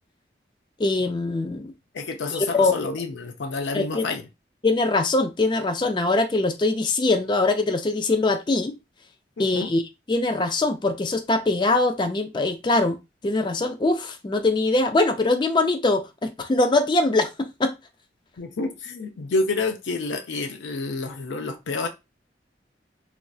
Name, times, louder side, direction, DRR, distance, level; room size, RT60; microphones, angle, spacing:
voice 1, 0.8-1.7 2.5-2.8 3.7-4.1 4.6-8.7 9.4-9.8 10.1-13.0 13.2-17.7, left 2 dB, 25° left, 0.3 m, -22 dB
voice 2, 1.9-4.2 9.4-9.7 18.4-21.9, left 3 dB, 80° left, 0.5 m, -29 dB
3.1 x 2.6 x 2.3 m
head